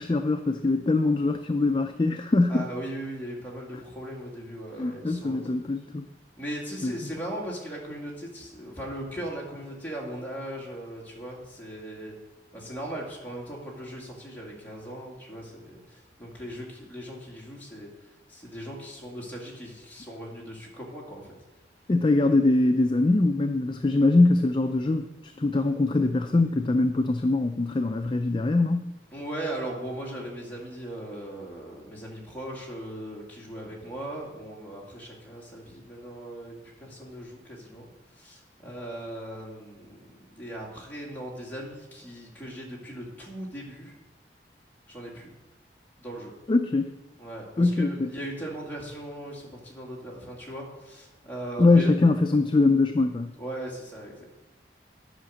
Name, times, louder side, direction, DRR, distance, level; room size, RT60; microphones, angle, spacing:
voice 1, 0.0-2.7 4.8-6.1 6.8-6.9 21.9-28.9 46.5-46.9 47.6-48.1 51.6-53.3, left 2 dB, 25° left, 7 dB, 0.4 m, -23 dB
voice 2, 2.5-5.4 6.4-12.1 12.5-17.9 18.3-21.3 29.1-43.9 44.9-45.3 46.0-46.3 47.2-51.9 53.4-54.2, right 1 dB, 10° left, -4 dB, 2.2 m, -38 dB
10.0 x 5.8 x 6.2 m, 1.1 s
head